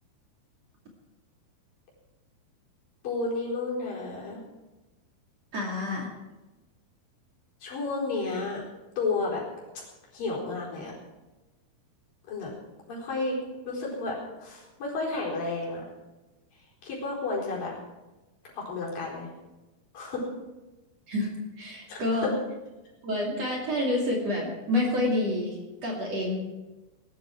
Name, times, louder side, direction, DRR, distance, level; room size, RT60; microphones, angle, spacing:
voice 1, 3.0-4.4 7.6-8.6 9.0-9.4 10.1-10.9 12.3-12.5 12.9-13.4 13.7-14.1 14.4-15.8 16.8-17.7 18.5-19.3 19.9-20.3 21.9-22.0, left 3 dB, 60° left, -4 dB, 6.1 m, -31 dB
voice 2, 5.5-6.1 21.1-21.3 21.6-22.3 23.0-26.4, left 1 dB, 45° right, -2 dB, 3.4 m, -28 dB
19.5 x 12.5 x 4.7 m, 1.1 s
omnidirectional pair, 4.5 m